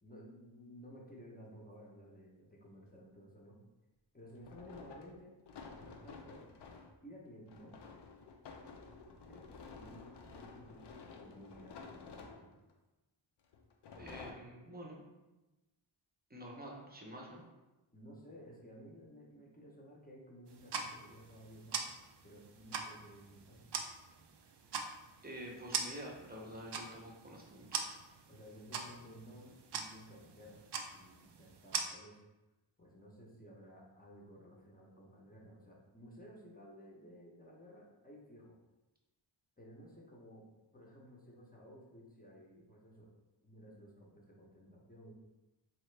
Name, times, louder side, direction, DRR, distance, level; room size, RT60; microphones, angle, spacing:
voice 1, 0.0-3.6 4.1-5.3 5.8-6.4 7.0-7.8 9.3-10.9 11.2-12.5 17.9-21.8 22.2-23.7 28.3-32.2 32.8-38.6 39.6-43.1 43.4-45.1, equal, 20° left, -4 dB, 0.7 m, -55 dB
sound 1, 1.6-1.7 4.3-7.0 7.5-12.7 13.5-14.3, left 4 dB, 60° left, 0.5 m, -52 dB
voice 2, 14.0-15.0 16.3-17.4 25.2-28.0, equal, 20° right, -1 dB, 0.7 m, -48 dB
sound 2, 20.5-31.8, right 5 dB, 60° right, 0.5 m, -43 dB
4.1 x 2.9 x 3.2 m, 1.1 s
wide cardioid pair, 135°, 47 cm